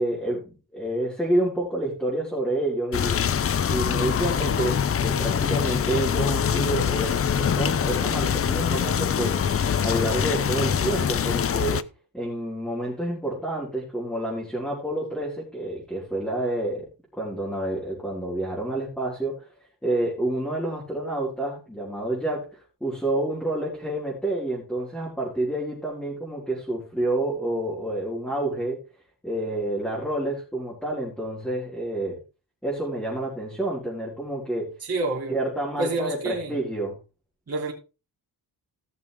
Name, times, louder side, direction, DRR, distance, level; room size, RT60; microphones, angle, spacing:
voice 1, 0.0-3.2 3.7-9.6 9.8-11.8 12.1-19.5 19.8-28.8 29.2-32.2 32.6-34.7 35.3-37.0, right 1 dB, ahead, 4.3 m, -29 dB
sound 1, 2.9-11.8, left 7 dB, 35° left, 0.5 m, -24 dB
voice 2, 34.8-35.4 35.8-36.6 37.5-37.7, right 2 dB, 35° right, 3.4 m, -28 dB
16.5 x 6.8 x 3.4 m
wide cardioid pair, 135°, 43 cm